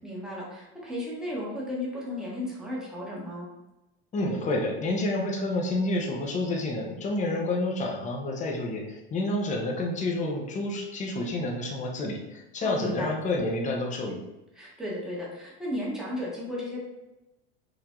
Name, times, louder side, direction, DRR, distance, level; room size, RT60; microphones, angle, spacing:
voice 1, 0.0-3.5 12.6-13.1 14.5-16.8, left 1 dB, ahead, -6 dB, 1.3 m, -34 dB
voice 2, 4.1-14.2, left 2 dB, 25° left, 1 dB, 0.8 m, -29 dB
4.8 x 2.6 x 3.7 m, 0.97 s
supercardioid pair, 130°, 29 cm